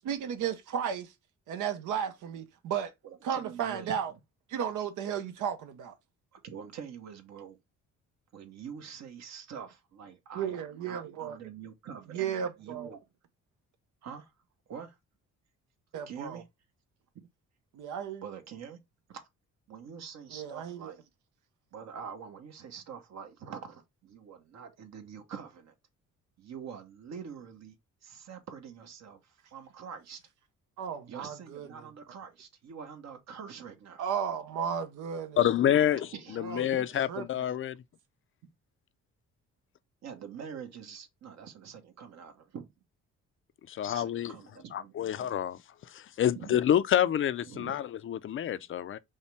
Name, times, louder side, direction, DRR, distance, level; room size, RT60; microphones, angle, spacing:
voice 1, 0.0-1.1 1.5-2.9 3.2-4.1 4.5-5.9 10.3-11.4 12.1-12.9 15.9-16.4 17.7-18.2 20.3-20.9 30.8-31.7 34.0-35.4 35.7-35.9 36.4-36.7 37.1-37.4, right 8 dB, 80° right, 0.8 m, -34 dB
voice 2, 3.0-3.9 6.3-7.6 8.3-12.2 12.6-13.0 14.0-14.3 14.7-15.0 16.1-16.4 18.2-18.8 19.1-19.2 19.7-21.0 21.7-25.7 26.4-27.8 28.0-30.2 31.1-34.0 36.1-36.6 40.0-42.7 43.9-45.3 46.3-46.6 47.4-47.8, right 7 dB, 65° right, 1.1 m, -45 dB
voice 3, 35.4-36.1 36.4-37.8 43.7-44.3 44.7-45.6 45.9-49.0, left 10 dB, 45° left, 0.4 m, -28 dB
5.5 x 2.2 x 3.3 m
cardioid pair, 90°, 30 cm